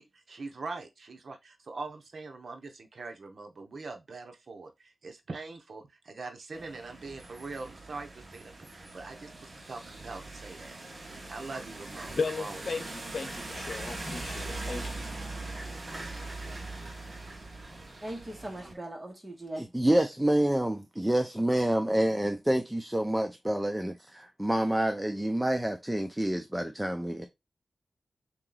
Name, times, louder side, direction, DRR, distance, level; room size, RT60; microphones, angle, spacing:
voice 1, 0.0-10.8 11.0-12.9, right 3 dB, 65° right, 0.8 m, -43 dB
sound 1, 6.5-18.7, right 2 dB, 40° right, 1.3 m, -41 dB
voice 2, 12.1-15.1, left 4 dB, 70° left, 0.8 m, -36 dB
voice 3, 18.0-19.7, right 1 dB, 25° right, 1.8 m, -40 dB
voice 4, 19.6-27.3, right 1 dB, 10° right, 0.5 m, -28 dB
3.8 x 3.0 x 3.8 m
wide cardioid pair, 85°, 0 cm